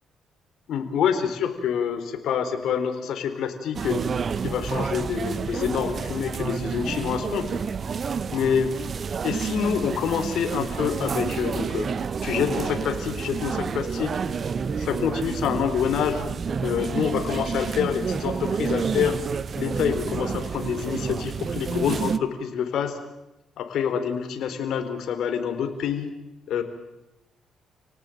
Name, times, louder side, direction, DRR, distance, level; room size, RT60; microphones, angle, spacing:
voice 1, 0.7-4.0 4.4-7.5 8.3-8.7 9.2-11.9 12.2-14.2 14.8-16.3 16.6-19.2 19.6-23.0 23.6-26.1 26.5-26.6, left 7 dB, 75° left, 8 dB, 3.9 m, -26 dB
sound 1, 3.7-22.2, right 6 dB, 45° right, 1.1 m, -29 dB
29.5 x 18.5 x 9.1 m, 0.93 s
cardioid pair, 90°, 0 cm